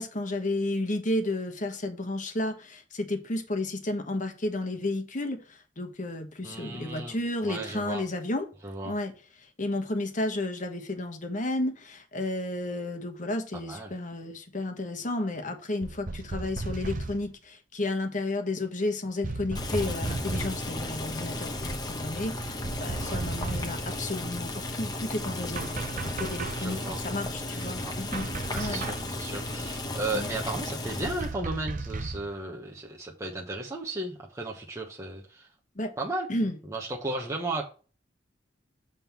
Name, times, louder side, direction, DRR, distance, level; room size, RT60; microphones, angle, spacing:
voice 1, 0.0-8.4 8.8-9.1 9.6-25.7 26.0-28.3 28.5-28.8 30.1-30.3 35.7-35.9 36.3-36.6, left 2 dB, 40° left, 1.2 m, -32 dB
voice 2, 6.4-8.0 8.6-9.0 13.5-13.9 23.0-23.2 26.5-27.0 27.5-28.0 28.5-35.5 36.0-36.3 36.7-37.7, right 2 dB, 15° right, 1.0 m, -35 dB
sound 1, 15.8-17.3 19.2-20.7 22.4-23.9 25.5-26.8 28.1-29.2 31.0-32.3, right 3 dB, 45° right, 0.6 m, -35 dB
Boiling, 19.5-31.3, left 1 dB, 20° left, 1.0 m, -34 dB
7.7 x 3.6 x 5.8 m
head